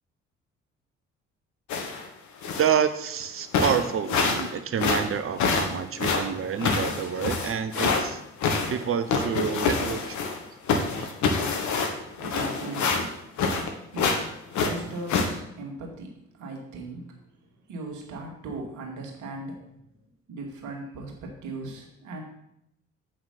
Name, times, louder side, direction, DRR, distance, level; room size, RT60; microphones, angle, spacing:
sound 1, 1.7-2.1 2.4-2.8 3.2-3.3 3.5-4.5 4.8-8.0 8.4-10.4 10.7-13.7 14.0-14.2 14.5-15.3, left 5 dB, 55° left, 1.5 m, -26 dB
voice 1, 2.6-8.2 8.7-10.3 11.0-11.1, right 7 dB, 40° right, 10 dB, 1.0 m, -28 dB
voice 2, 12.2-13.2 13.9-17.2 17.7-19.7 20.3-22.2, right 2 dB, 55° right, 1 dB, 2.4 m, -38 dB
8.6 x 8.0 x 4.3 m, 0.79 s
figure-of-eight pair, 45°, 35 cm